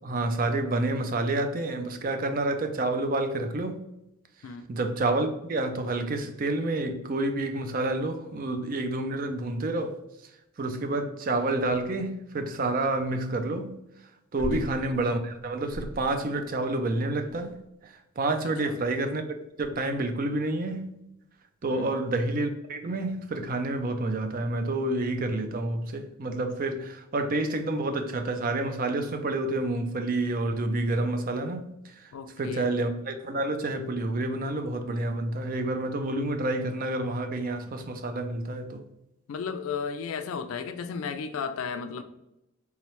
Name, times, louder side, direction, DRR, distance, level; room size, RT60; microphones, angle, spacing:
voice 1, 0.0-3.8 4.7-10.0 10.6-13.7 14.3-17.5 17.8-20.9 21.6-32.1 32.4-38.8, right 2 dB, 40° right, 0.4 m, -29 dB
sound 1, 11.6-12.1 14.4-16.3 17.2-17.7 18.6-18.7 19.6-20.0, equal, 70° right, 1.2 m, -41 dB
voice 2, 18.4-18.8 21.7-22.0 32.1-32.7 39.3-42.0, left 6 dB, 70° left, 0.3 m, -34 dB
3.6 x 3.1 x 3.0 m
head